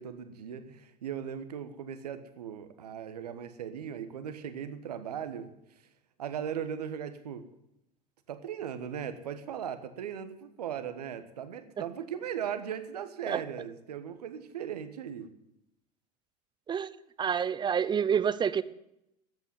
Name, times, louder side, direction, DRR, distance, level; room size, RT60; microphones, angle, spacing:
voice 1, 0.0-5.5 6.2-7.5 8.3-15.3, right 8 dB, 75° right, 10 dB, 1.3 m, -38 dB
voice 2, 17.2-18.6, right 7 dB, 20° right, 16 dB, 0.7 m, -28 dB
13.5 x 8.3 x 9.2 m, 0.83 s
hypercardioid pair, 85°, 20 cm